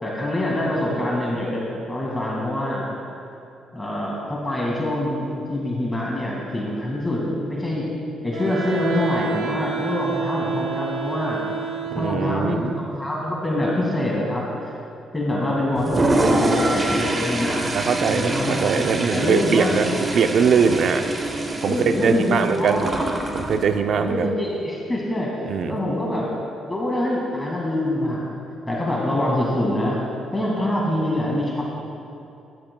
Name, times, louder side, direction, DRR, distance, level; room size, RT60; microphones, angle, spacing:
voice 1, 0.0-1.6 1.9-2.9 3.7-7.9 8.2-11.4 12.0-14.5 15.1-17.6 18.1-19.7 21.6-23.0 23.9-25.3 25.7-26.3 26.7-28.3 28.7-30.0 30.3-31.6, left 1 dB, 15° left, -4 dB, 2.0 m, -25 dB
Wind instrument woodwind instrument, 8.3-12.4, right 5 dB, 85° right, 2.1 m, -29 dB
voice 2, 11.9-12.7 16.2-16.5 17.7-21.0 21.6-22.9 23.3-24.3 25.5-25.8, right 6 dB, 65° right, 8 dB, 0.6 m, -22 dB
Toilet flush, 15.8-23.6, right 2 dB, 30° right, 0.9 m, -25 dB
13.5 x 11.0 x 2.3 m, 2.7 s
cardioid pair, 90°, 0 cm